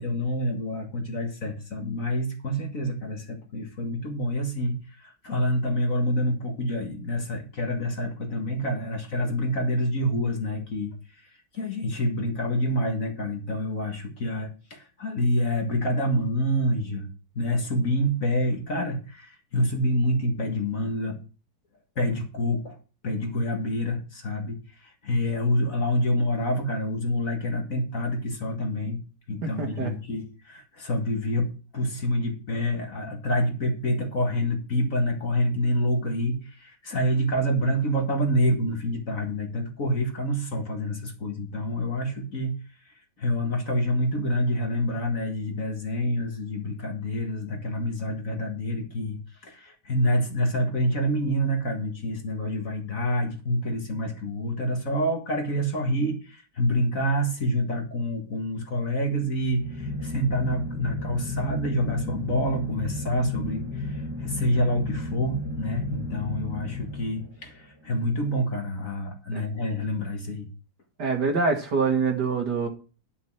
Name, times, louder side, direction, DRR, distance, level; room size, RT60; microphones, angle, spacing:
voice 1, 0.0-10.9 11.5-17.1 17.4-21.2 22.0-22.8 23.0-29.0 29.3-42.5 43.2-70.5, equal, 40° left, 3 dB, 2.0 m, -27 dB
voice 2, 29.4-29.9 69.3-69.4 71.0-72.7, right 4 dB, 55° right, 3 dB, 2.6 m, -25 dB
sound 1, 59.3-67.6, left 2 dB, 15° right, 1.1 m, -33 dB
11.0 x 6.5 x 6.0 m, 0.34 s
omnidirectional pair, 2.2 m